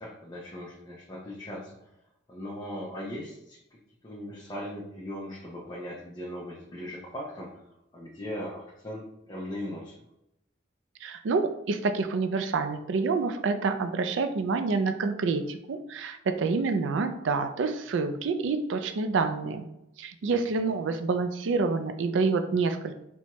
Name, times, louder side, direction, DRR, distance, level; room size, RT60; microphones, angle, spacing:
voice 1, 0.0-1.9 2.3-3.6 4.0-7.6 7.9-9.9 20.2-20.4, left 1 dB, 20° left, -5 dB, 0.5 m, -39 dB
voice 2, 11.0-19.6 20.0-23.0, right 4 dB, 75° right, 8 dB, 0.4 m, -27 dB
4.3 x 2.2 x 2.9 m, 0.84 s
head